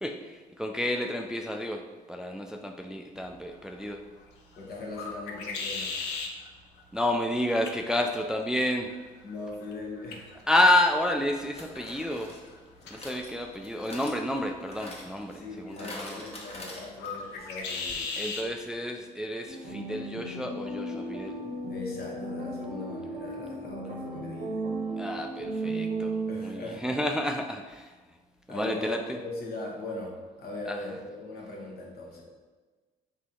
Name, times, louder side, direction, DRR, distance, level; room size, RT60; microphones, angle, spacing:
voice 1, 0.0-4.0 6.9-8.9 10.5-12.4 12.9-16.2 18.2-21.4 25.0-27.9 28.5-29.2 30.7-31.0, left 1 dB, 5° right, 4 dB, 0.3 m, -30 dB
sound 1, 3.2-18.5, left 4 dB, 75° left, 0.5 m, -41 dB
voice 2, 4.6-5.9 9.2-10.3 15.3-18.1 21.7-24.6 26.3-27.0 28.5-29.0 29.4-32.2, left 2 dB, 60° left, -2 dB, 1.1 m, -39 dB
sound 2, 10.3-10.4 11.6-17.3 17.6-17.7 17.9-18.0, left 1 dB, 35° left, 1.0 m, -45 dB
sound 3, 19.5-26.7, right 2 dB, 45° right, 0.8 m, -35 dB
3.2 x 2.9 x 3.7 m, 1.3 s
hypercardioid pair, 55°, 18 cm